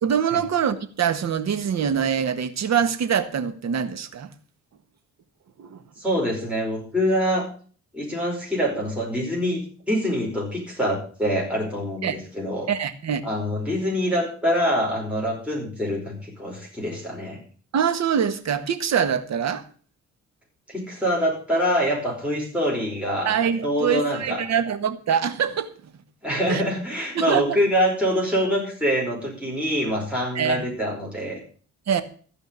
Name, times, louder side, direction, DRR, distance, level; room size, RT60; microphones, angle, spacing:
voice 1, 0.0-4.3 5.6-5.8 12.0-12.2 12.7-13.2 17.7-19.6 23.2-25.7 26.5-26.6 27.1-27.6 30.3-30.6 31.9-32.0, right 8 dB, 60° right, 1.6 m, -24 dB
voice 2, 6.0-7.5 7.9-12.7 13.2-17.4 20.7-23.3 23.6-24.4 26.2-31.4, equal, 5° right, 5.0 m, -25 dB
15.0 x 5.2 x 8.8 m
cardioid pair, 90°, 30 cm